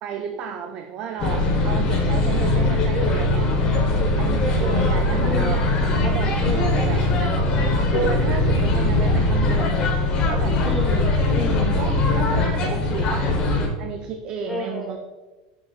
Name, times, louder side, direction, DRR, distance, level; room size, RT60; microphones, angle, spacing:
voice 1, 0.0-3.5 4.2-5.7 6.0-7.4 7.9-10.6 11.8-13.3 13.8-15.0, right 6 dB, 35° right, 5 dB, 0.4 m, -32 dB
sound 1, 1.2-13.7, left 2 dB, 30° left, 1.0 m, -21 dB
voice 2, 4.5-5.6 6.4-6.8 10.6-11.8 14.5-15.0, left 1 dB, ahead, 1 dB, 0.8 m, -31 dB
7.2 x 6.4 x 2.4 m, 1.2 s
supercardioid pair, 170°, 3 cm